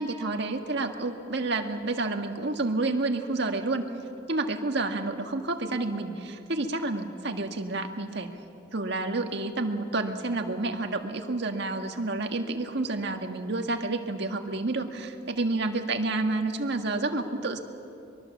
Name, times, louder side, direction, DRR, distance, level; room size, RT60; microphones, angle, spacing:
voice 1, 0.0-3.9 4.3-8.3 8.7-17.6, right 2 dB, 65° right, 4 dB, 1.7 m, -29 dB
23.5 x 22.5 x 7.2 m, 2.6 s
head